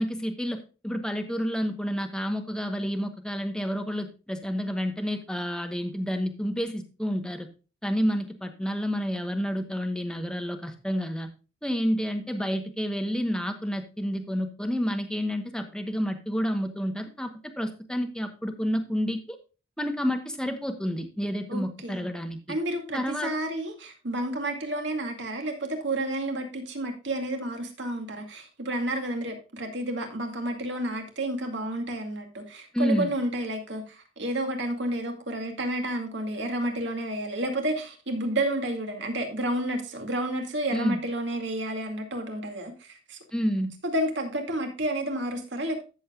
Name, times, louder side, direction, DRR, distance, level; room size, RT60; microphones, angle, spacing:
voice 1, 0.0-7.5 7.8-11.3 11.6-19.4 19.8-22.6 22.9-23.3 32.7-33.1 40.7-41.0 43.3-43.7, equal, 5° left, 6 dB, 1.0 m, -29 dB
voice 2, 21.5-22.1 22.5-43.2 43.8-45.8, right 1 dB, 60° right, 4 dB, 2.2 m, -30 dB
14.0 x 7.3 x 2.4 m, 0.32 s
head